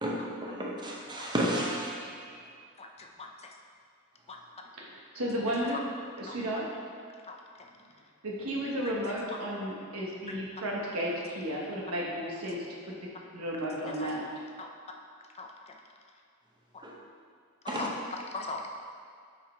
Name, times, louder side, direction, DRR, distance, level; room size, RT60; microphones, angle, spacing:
voice 1, 0.0-2.2 16.8-16.9 17.7-17.9, right 1 dB, 20° right, -3 dB, 0.8 m, -32 dB
voice 2, 2.8-3.5 4.3-4.4 5.6-5.8 6.3-6.4 7.3-7.7 10.3-10.4 14.0-14.1 14.6-14.7 15.3-15.8 16.7-16.8 17.6-18.6, left 3 dB, 30° left, 2 dB, 0.5 m, -41 dB
voice 3, 4.8-5.8 6.2-6.6 8.2-12.9 13.3-14.2, equal, 85° right, -3 dB, 1.2 m, -33 dB
5.5 x 4.8 x 4.4 m, 2.2 s
head